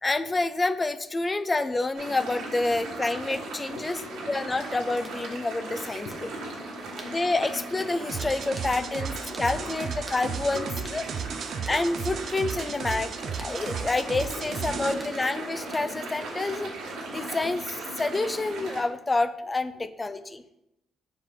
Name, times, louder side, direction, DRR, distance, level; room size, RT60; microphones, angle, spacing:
voice 1, 0.0-4.0 4.3-6.1 7.0-10.6 10.9-11.0 11.7-13.1 13.4-16.7 17.1-20.4, left 2 dB, 20° left, 12 dB, 0.4 m, -28 dB
sound 1, 1.9-18.8, right 2 dB, 85° right, 1.6 m, -38 dB
voice 2, 3.3-4.5 6.0-6.2 8.4-8.6 9.3-9.7 10.5-11.5 12.5-13.1 14.3-15.1 19.4-19.8 20.1-20.5, left 4 dB, 85° left, 3 dB, 0.7 m, -46 dB
sound 2, 4.0-4.1 5.0-5.2 6.1-6.3 7.0-7.2 7.8-8.0 8.6-8.7 9.3-9.5 10.1-10.3 10.8-11.0 11.7-11.8 12.6-12.8 13.4-13.6 14.2-14.4 15.0-15.2 15.7-16.0, right 1 dB, 5° right, 1.1 m, -47 dB
sound 3, 8.1-14.9, right 7 dB, 60° right, 0.4 m, -35 dB
5.7 x 4.7 x 3.8 m, 0.84 s
cardioid pair, 90°, 0 cm